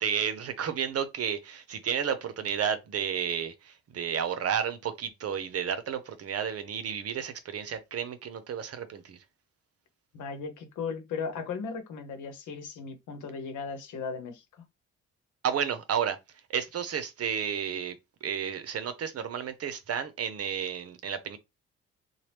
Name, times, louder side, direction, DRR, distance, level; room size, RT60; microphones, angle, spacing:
voice 1, 0.0-9.2 15.4-16.2 16.5-18.0 18.2-21.4, right 8 dB, 55° right, 0.7 m, -32 dB
voice 2, 10.1-14.6, left 5 dB, 80° left, 1.0 m, -37 dB
3.0 x 2.3 x 3.2 m
cardioid pair, 90°, 30 cm